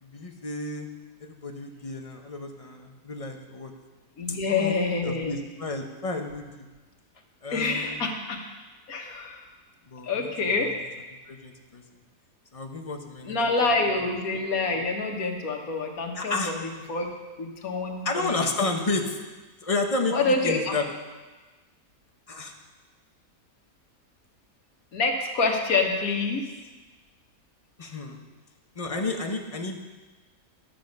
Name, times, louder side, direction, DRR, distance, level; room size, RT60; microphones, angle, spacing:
voice 1, 0.0-0.9 1.2-3.7 4.3-4.7 5.0-6.7 7.4-8.0 9.9-10.3 10.6-10.8 11.3-11.8 12.5-13.4 16.1-16.5 18.0-19.2 19.6-20.8 22.3-22.5 27.8-28.2 28.8-29.8, left 3 dB, 30° left, 3 dB, 0.8 m, -31 dB
voice 2, 4.2-5.3 7.5-8.4 8.9-9.4 10.0-10.8 13.3-16.6 16.9-18.3 20.1-20.7 24.9-26.5, left 3 dB, 70° left, 2 dB, 1.7 m, -27 dB
11.5 x 7.8 x 5.2 m, 1.3 s
omnidirectional pair, 1.6 m